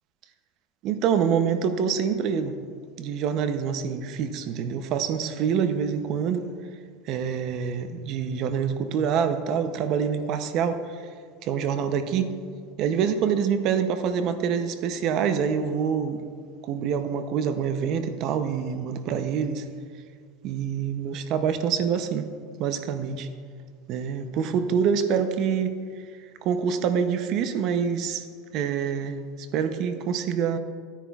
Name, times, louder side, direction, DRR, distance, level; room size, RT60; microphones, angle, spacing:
voice 1, 0.8-2.6 3.0-6.5 7.1-11.1 11.4-12.3 12.8-16.2 16.6-19.6 20.4-22.3 22.6-23.3 23.9-28.2 28.5-30.6, right 7 dB, 45° right, 9 dB, 0.6 m, -26 dB
15.0 x 10.0 x 2.3 m, 2.1 s
supercardioid pair, 150°, 0 cm